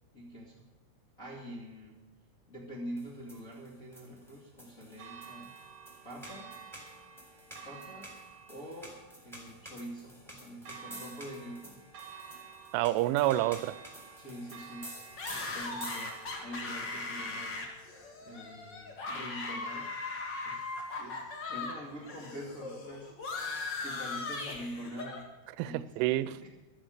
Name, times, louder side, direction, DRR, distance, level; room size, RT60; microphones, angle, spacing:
voice 1, 0.1-0.7 1.2-2.0 2.5-5.5 6.0-6.6 7.5-8.2 8.5-11.8 14.2-15.0 15.5-17.7 18.2-19.9 20.4-20.6 21.0-23.2 23.8-25.3 25.6-26.5, equal, 30° left, -4 dB, 1.6 m, -45 dB
sound 1, 3.0-16.5, equal, ahead, 3.2 m, -50 dB
Church bell, 5.0-19.0, right 6 dB, 45° right, 2.2 m, -52 dB
voice 2, 12.7-13.8 25.6-26.5, right 15 dB, 85° right, 16 dB, 3.1 m, -28 dB
sound 2, 15.2-21.8 22.0-25.2, left 3 dB, 65° left, 1.0 m, -39 dB
14.0 x 12.0 x 6.5 m, 1.2 s
omnidirectional pair, 5.5 m